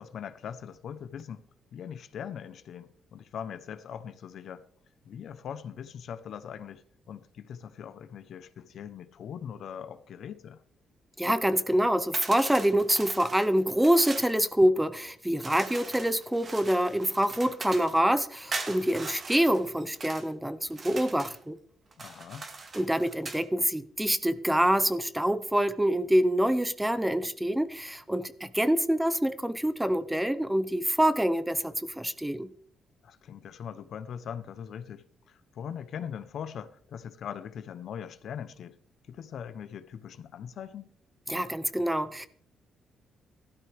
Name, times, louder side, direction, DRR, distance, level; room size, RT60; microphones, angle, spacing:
voice 1, 0.0-1.4 1.7-4.6 5.0-10.6 22.0-22.5 33.0-38.8 39.1-40.9, left 8 dB, 65° left, 0.8 m, -41 dB
voice 2, 11.2-21.6 22.7-32.5 41.3-42.3, right 1 dB, 5° right, 0.6 m, -26 dB
sound 1, 12.1-14.3 15.4-18.0 18.5-20.3 20.7-21.4 21.9-23.4, right 3 dB, 35° right, 1.7 m, -40 dB
15.5 x 13.0 x 3.4 m
cardioid pair, 110°, 0 cm